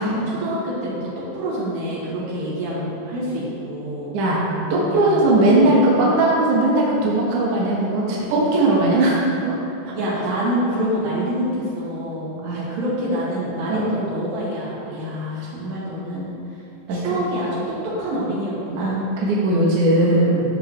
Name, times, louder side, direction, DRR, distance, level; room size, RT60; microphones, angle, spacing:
voice 1, 0.0-4.2 4.9-5.8 9.9-16.6 16.9-19.0 19.9-20.2, equal, 85° right, -8 dB, 4.5 m, -27 dB
voice 2, 4.7-9.6 9.9-10.0 12.4-12.7 13.7-14.0 16.9-17.1 18.8-20.4, right 2 dB, 60° right, -5 dB, 2.5 m, -19 dB
13.0 x 6.7 x 3.3 m, 2.8 s
omnidirectional pair, 4.7 m